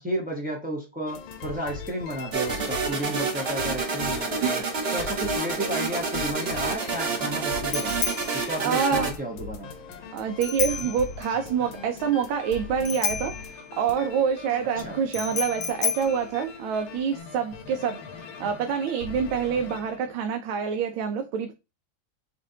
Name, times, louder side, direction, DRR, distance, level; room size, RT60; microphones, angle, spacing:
voice 1, 0.0-4.6 4.9-8.0 8.3-9.7 10.8-10.9 14.7-15.0, right 1 dB, 10° right, 0.4 m, -32 dB
sound 1, 1.1-20.2, left 5 dB, 80° left, 1.7 m, -41 dB
sound 2, 2.3-9.1, right 4 dB, 40° right, 1.0 m, -28 dB
Bicycle bell, 6.1-17.2, left 7 dB, 55° left, 0.8 m, -34 dB
voice 2, 8.6-9.1 10.1-21.5, right 7 dB, 80° right, 1.5 m, -27 dB
7.0 x 2.7 x 2.7 m
omnidirectional pair, 2.2 m